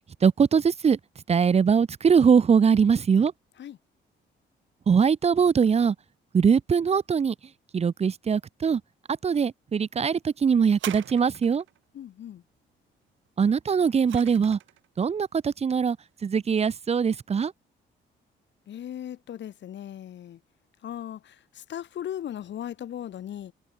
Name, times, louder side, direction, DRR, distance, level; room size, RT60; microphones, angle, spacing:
voice 1, 0.2-1.0 1.3-3.3 4.9-5.9 6.3-7.3 7.7-8.8 9.2-11.6 13.4-14.6 15.0-16.0 16.2-17.5, right 6 dB, 30° right, 0.7 m, -22 dB
sound 1, 10.7-11.8 13.5-14.9 15.7-15.8, right 12 dB, 75° right, 4.0 m, -41 dB
voice 2, 11.9-12.4 18.7-20.4 20.8-23.5, left 10 dB, 65° left, 2.2 m, -37 dB
cardioid pair, 90°, 20 cm